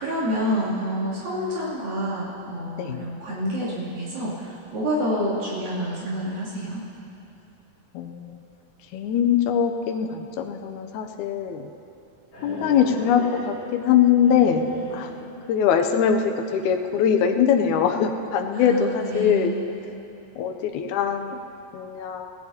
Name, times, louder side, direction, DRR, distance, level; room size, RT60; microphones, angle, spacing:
voice 1, 0.0-6.8 18.5-19.5, equal, 75° right, -9 dB, 4.7 m, -28 dB
voice 2, 7.9-8.3 8.9-11.7 12.4-15.1 15.5-19.5 20.4-21.4 21.7-22.3, left 8 dB, 80° left, 3 dB, 1.8 m, -22 dB
sound 1, 12.3-15.6, equal, 30° left, 3.5 m, -38 dB
30.0 x 16.5 x 2.9 m, 2.8 s
omnidirectional pair, 4.2 m